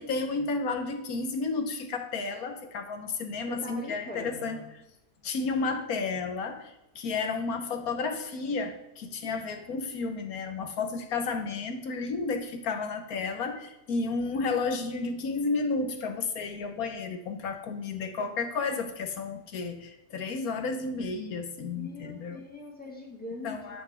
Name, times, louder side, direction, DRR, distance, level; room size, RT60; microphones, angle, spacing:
voice 1, 0.0-4.6 5.2-22.4 23.4-23.8, left 4 dB, 65° left, 6 dB, 1.2 m, -32 dB
voice 2, 3.5-4.6 21.7-23.8, left 1 dB, 5° left, -2 dB, 1.6 m, -42 dB
10.5 x 5.9 x 3.4 m, 0.90 s
omnidirectional pair, 1.8 m